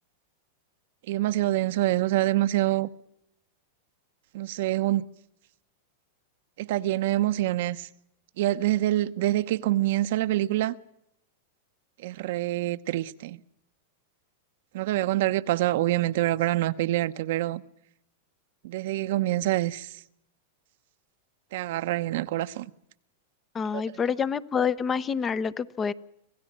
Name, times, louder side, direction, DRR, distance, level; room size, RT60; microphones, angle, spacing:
voice 1, 1.1-2.9 4.3-5.0 6.6-7.9 8.4-10.7 12.0-13.4 14.7-17.6 18.6-19.9 21.5-22.7, right 15 dB, 65° right, 0.9 m, -26 dB
voice 2, 23.5-25.9, left 6 dB, 20° left, 0.9 m, -27 dB
26.5 x 17.5 x 7.5 m
hypercardioid pair, 130°, 0 cm